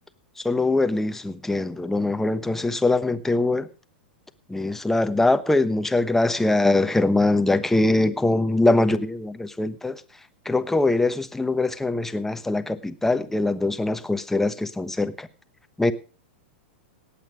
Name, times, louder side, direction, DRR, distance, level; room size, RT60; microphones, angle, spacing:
voice 1, 0.4-3.7 4.5-10.0 10.4-15.3 15.8-15.9, left 2 dB, 5° left, 10 dB, 1.1 m, -22 dB
18.0 x 8.7 x 5.1 m, 0.37 s
hypercardioid pair, 110°, 6 cm